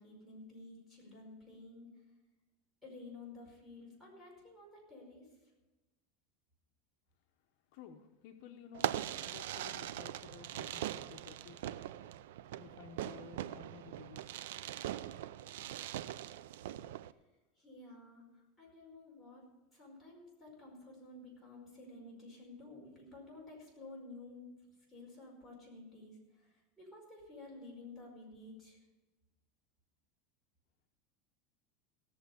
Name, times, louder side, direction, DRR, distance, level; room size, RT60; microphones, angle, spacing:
voice 1, 0.0-1.9 2.8-5.3 17.6-24.5 24.9-28.8, left 2 dB, 5° left, -5 dB, 5.2 m, -52 dB
voice 2, 7.7-11.8 12.6-14.4, left 8 dB, 60° left, 4 dB, 0.9 m, -54 dB
Fireworks, 8.7-17.1, right 12 dB, 85° right, 0.4 m, -41 dB
17.0 x 7.3 x 7.0 m, 1.1 s
supercardioid pair, 155°, 0 cm